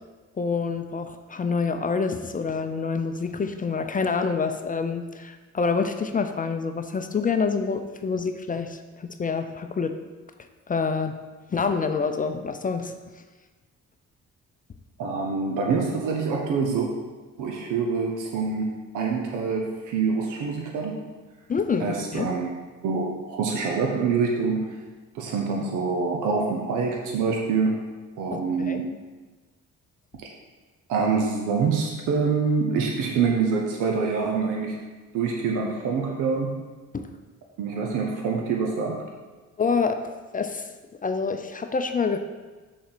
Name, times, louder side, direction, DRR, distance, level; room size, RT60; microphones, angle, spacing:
voice 1, 0.4-10.0 10.7-11.1 11.5-12.9 21.5-22.3 28.3-28.8 36.9-37.1 39.6-40.0 40.3-40.7 41.0-42.2, left 5 dB, 30° left, 7 dB, 0.5 m, -27 dB
voice 2, 15.0-16.9 17.4-21.0 21.8-22.5 22.8-24.8 25.1-27.8 28.2-28.8 30.1-30.3 30.9-34.8 35.1-36.7 37.6-39.1, right 5 dB, 90° right, 0 dB, 0.9 m, -26 dB
6.3 x 4.1 x 6.1 m, 1.3 s
cardioid pair, 90°, 30 cm